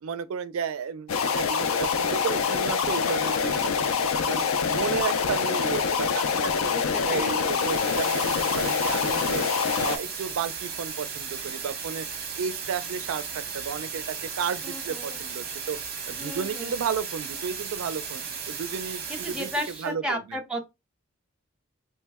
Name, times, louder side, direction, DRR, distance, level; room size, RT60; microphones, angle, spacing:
voice 1, 0.0-4.4 4.7-6.8 7.0-9.4 9.8-12.1 12.4-15.8 16.1-19.5 19.8-20.2, right 6 dB, 85° right, 0.4 m, -33 dB
sound 1, 1.1-10.0, left 6 dB, 85° left, 0.4 m, -25 dB
voice 2, 6.7-7.7 14.6-15.2 16.2-16.7 19.1-20.6, equal, 5° right, 0.5 m, -34 dB
sound 2, 7.2-19.9, right 6 dB, 45° right, 0.8 m, -36 dB
3.2 x 2.1 x 3.4 m
head